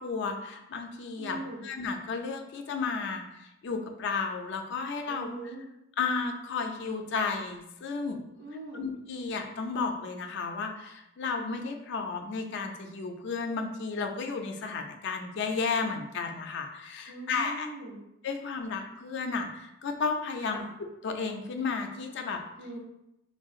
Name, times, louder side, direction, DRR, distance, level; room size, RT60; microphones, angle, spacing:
voice 1, 0.0-5.5 6.0-8.2 8.7-17.7 18.2-22.4, left 4 dB, 60° left, 5 dB, 0.4 m, -33 dB
voice 2, 1.2-1.6 5.1-5.6 8.4-8.9 17.1-18.0 20.4-20.7 22.6-22.8, right 2 dB, 70° right, -6 dB, 0.6 m, -41 dB
3.6 x 2.2 x 2.4 m, 0.87 s
head